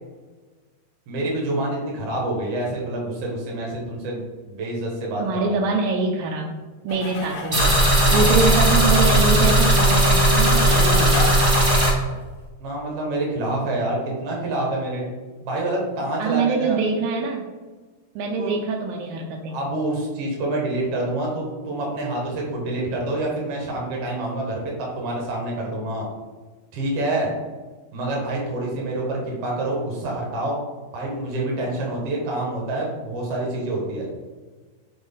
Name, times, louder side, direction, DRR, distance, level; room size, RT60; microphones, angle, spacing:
voice 1, 1.1-5.7 8.0-8.3 12.6-15.0 15.4-16.8 18.4-18.6 19.5-26.0 26.7-27.3 27.9-30.6 30.9-34.1, right 1 dB, 70° right, -2 dB, 1.4 m, -27 dB
voice 2, 5.2-6.5 6.8-7.9 8.1-11.3 16.2-17.4 18.2-19.6, right 4 dB, 85° right, 0 dB, 2.0 m, -24 dB
sound 1, 6.9-12.5, left 4 dB, 75° left, 1.8 m, -34 dB
sound 2, 7.5-11.9, right 1 dB, 50° right, 0.9 m, -17 dB
6.3 x 4.4 x 3.6 m, 1.3 s
omnidirectional pair, 4.7 m